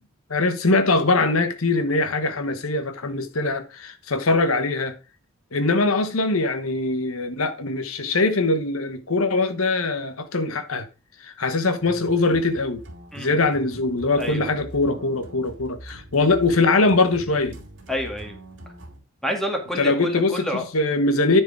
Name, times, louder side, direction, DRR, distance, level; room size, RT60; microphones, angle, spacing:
voice 1, 0.3-4.9 5.5-10.9 11.2-12.8 13.2-17.6 19.8-21.4, left 3 dB, 90° left, 1.1 m, -22 dB
sound 1, 11.8-19.0, right 1 dB, 60° right, 2.7 m, -43 dB
voice 2, 14.2-14.5 17.3-17.4 17.9-18.3 19.2-20.6, equal, ahead, 1.9 m, -29 dB
9.8 x 4.9 x 4.8 m
head